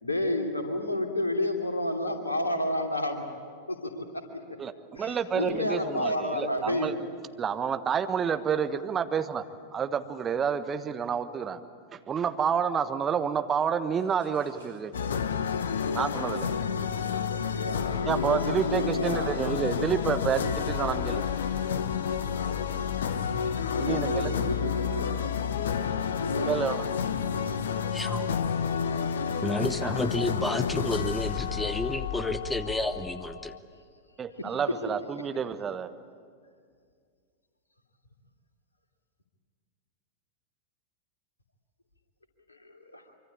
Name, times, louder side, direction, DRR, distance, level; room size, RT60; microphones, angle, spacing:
voice 1, 0.0-3.2 3.7-4.0 4.3-4.4 4.9-6.9 17.5-19.4 23.7-25.2 26.2-26.6 27.5-27.6 34.4-34.5 42.5-43.0, left 1 dB, 80° left, 3 dB, 2.8 m, -30 dB
voice 2, 4.6-6.9 7.4-9.4 9.7-11.6 11.9-15.0 15.9-16.5 18.1-21.2 23.8-24.3 26.4-26.9 34.2-35.9, right 7 dB, 25° right, 9 dB, 1.2 m, -29 dB
sound 1, 13.9-29.9, right 3 dB, 70° right, 5.1 m, -53 dB
sound 2, 14.9-33.6, left 7 dB, 65° left, 1.0 m, -30 dB
voice 3, 27.9-28.4 29.4-33.5, left 1 dB, 5° left, 12 dB, 1.0 m, -30 dB
25.0 x 24.5 x 8.7 m, 2.1 s
figure-of-eight pair, 90°, 0 cm